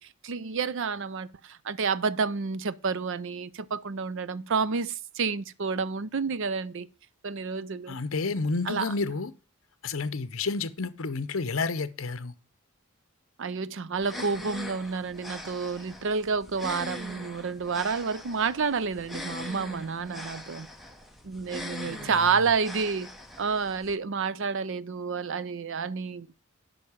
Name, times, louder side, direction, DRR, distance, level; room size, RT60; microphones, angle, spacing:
voice 1, 0.0-6.9 7.2-7.9 8.7-8.9 13.4-20.7 21.2-23.1 23.4-26.3, right 5 dB, 55° right, 0.5 m, -29 dB
voice 2, 7.9-9.3 9.8-12.3 21.9-22.5, left 4 dB, 60° left, 0.7 m, -30 dB
sound 1, 14.0-24.0, left 1 dB, ahead, 0.9 m, -42 dB
8.4 x 5.5 x 7.0 m
head